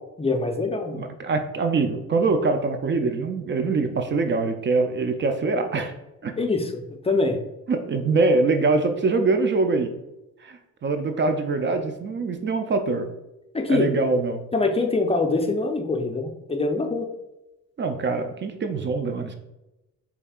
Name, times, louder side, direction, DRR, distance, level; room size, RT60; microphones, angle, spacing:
voice 1, 0.2-1.0 6.4-7.4 13.5-13.9 14.5-17.1, left 3 dB, 20° left, 4 dB, 0.6 m, -24 dB
voice 2, 0.9-5.9 6.2-6.3 7.7-9.9 10.4-13.1 13.7-14.4 17.8-19.3, right 3 dB, 40° right, 6 dB, 0.5 m, -23 dB
5.2 x 3.5 x 2.4 m, 0.95 s
cardioid pair, 90°, 30 cm